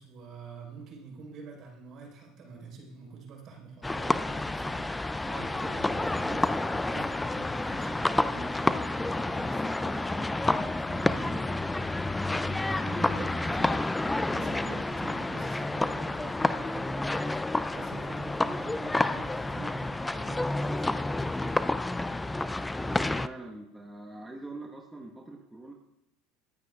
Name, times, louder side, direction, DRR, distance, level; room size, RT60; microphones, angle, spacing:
voice 1, 0.0-11.8 12.4-21.6, right 4 dB, 50° right, 0 dB, 4.4 m, -46 dB
sound 1, 3.8-23.3, left 2 dB, 10° left, 0.5 m, -29 dB
voice 2, 22.9-25.7, right 2 dB, 10° right, 0 dB, 1.4 m, -43 dB
21.5 x 9.3 x 2.5 m, 0.88 s
hypercardioid pair, 80°, 0 cm